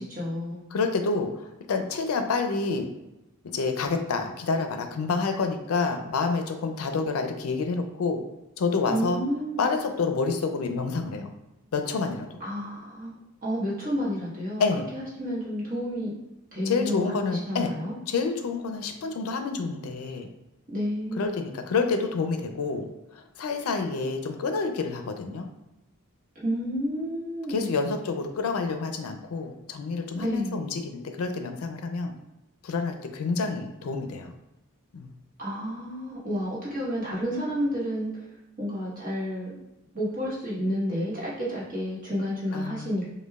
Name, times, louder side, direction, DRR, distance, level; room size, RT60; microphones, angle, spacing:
voice 1, 0.0-0.6 8.9-9.7 12.4-13.1 13.4-14.6 14.9-16.1 16.5-17.9 20.7-21.3 26.3-27.7 30.1-30.6 35.4-38.1 38.6-39.5 39.9-43.1, equal, 40° right, -7 dB, 1.2 m, -30 dB
voice 2, 0.7-2.9 3.5-8.2 8.6-9.2 9.6-11.3 11.7-12.4 14.6-14.9 16.7-17.7 18.1-20.3 21.2-22.9 23.2-25.5 27.5-32.1 32.6-34.3 34.9-35.1 42.5-42.9, left 4 dB, 80° left, 6 dB, 0.4 m, -28 dB
5.1 x 2.2 x 2.3 m, 0.94 s
head